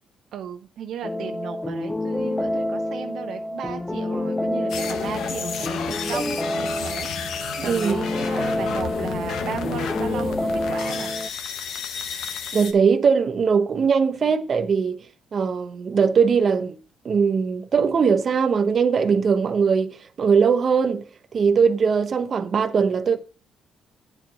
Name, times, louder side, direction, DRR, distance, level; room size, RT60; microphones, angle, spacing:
voice 1, 0.3-7.1 7.6-11.1, right 9 dB, 75° right, 0.5 m, -35 dB
sound 1, 1.0-11.3, left 1 dB, 10° left, 0.4 m, -28 dB
sound 2, 4.7-12.7, left 7 dB, 80° left, 0.8 m, -32 dB
voice 2, 7.6-8.0 12.5-15.0 15.3-16.8 17.0-21.1 21.3-23.2, right 6 dB, 50° right, 0.8 m, -20 dB
8.8 x 4.6 x 5.2 m
cardioid pair, 90°, 0 cm